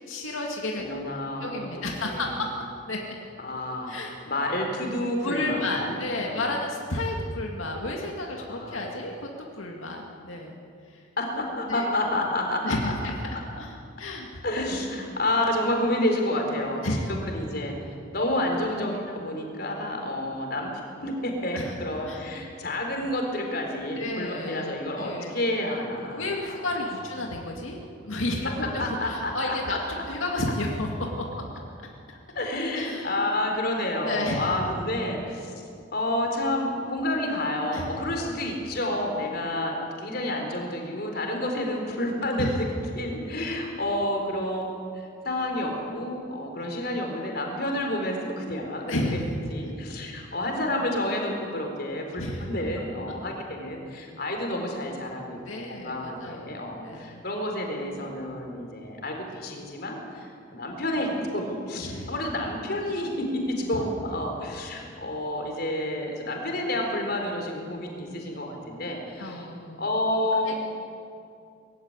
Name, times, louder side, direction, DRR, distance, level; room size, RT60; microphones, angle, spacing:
voice 1, 0.1-0.8 1.4-2.6 2.9-3.0 3.9-4.2 5.2-10.5 10.9-11.1 11.7-11.9 12.6-13.1 13.6-14.4 16.8-17.1 21.5-21.7 22.1-22.2 24.0-24.7 25.0-25.3 26.1-27.8 28.0-31.3 32.7-33.2 34.0-34.5 37.7-37.9 42.4-42.6 48.9-49.3 52.1-52.5 55.5-56.5 56.8-57.2 61.8-62.1 69.2-69.8, left 2 dB, 90° left, 0 dB, 2.4 m, -31 dB
voice 2, 0.8-2.4 3.4-3.9 4.3-6.6 8.5-8.9 11.2-12.9 13.3-13.4 14.4-16.9 17.3-17.7 18.1-20.7 21.0-26.6 28.6-29.8 32.3-35.5 35.9-42.5 43.0-49.2 49.5-69.4 69.8-70.6, left 1 dB, 50° left, 2 dB, 4.1 m, -29 dB
21.0 x 15.5 x 9.8 m, 2.4 s
head